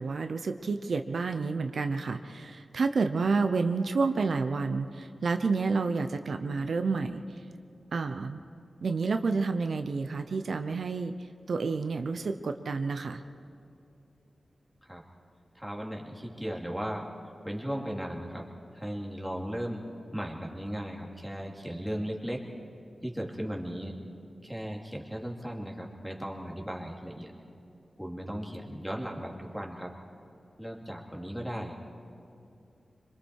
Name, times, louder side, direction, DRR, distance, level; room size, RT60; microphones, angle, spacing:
voice 1, 0.0-7.2 7.9-8.4 8.8-11.1 11.5-13.2, right 4 dB, 70° right, 7 dB, 0.8 m, -29 dB
voice 2, 15.5-17.1 17.4-19.8 20.1-22.5 23.0-24.0 24.4-27.3 28.0-29.9 30.6-31.8, equal, ahead, -1 dB, 2.7 m, -36 dB
26.0 x 24.5 x 4.8 m, 2.7 s
wide cardioid pair, 120°, 0 cm